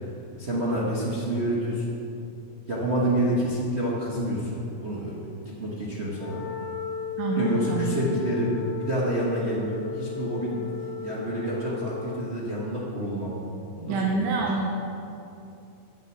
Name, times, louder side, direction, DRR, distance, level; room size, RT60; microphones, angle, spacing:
voice 1, 0.4-2.0 2.7-5.2 5.4-6.4 7.3-13.3 13.7-14.3, right 1 dB, 70° right, -6 dB, 0.6 m, -28 dB
Wind instrument woodwind instrument, 6.1-12.4, left 7 dB, 60° left, 1.9 m, -35 dB
voice 2, 7.2-8.0 13.9-14.7, right 4 dB, 85° right, -1 dB, 2.5 m, -26 dB
9.4 x 8.0 x 7.0 m, 2.7 s
omnidirectional pair, 3.7 m